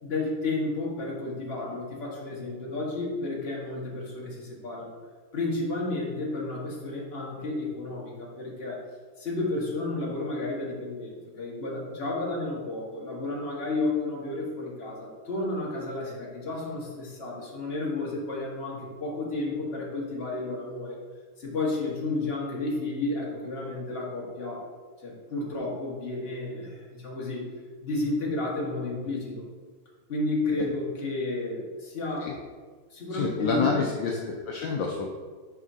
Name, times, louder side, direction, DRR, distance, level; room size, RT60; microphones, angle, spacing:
voice 1, 0.0-4.9 5.3-8.8 9.2-21.0 21.4-24.7 25.0-27.5 27.8-29.4 30.1-32.3 32.9-33.9, left 2 dB, 30° left, -4 dB, 1.7 m, -32 dB
voice 2, 33.1-35.1, left 5 dB, 70° left, 0 dB, 1.3 m, -28 dB
9.8 x 4.9 x 2.8 m, 1.5 s
omnidirectional pair, 2.4 m